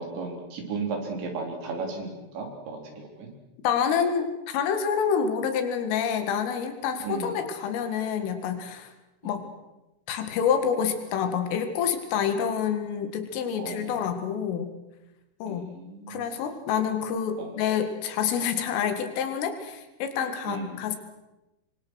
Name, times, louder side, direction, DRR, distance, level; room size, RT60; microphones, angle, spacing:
voice 1, 0.0-3.3 7.0-7.3 9.2-9.4 13.6-13.9 15.5-16.2 17.4-17.5 20.5-20.9, right 4 dB, 65° right, 2 dB, 6.2 m, -35 dB
voice 2, 3.6-8.9 9.2-9.4 10.1-14.7 15.4-15.7 16.1-21.0, left 7 dB, 85° left, 7 dB, 4.6 m, -27 dB
26.5 x 24.0 x 6.5 m, 0.98 s
omnidirectional pair, 5.7 m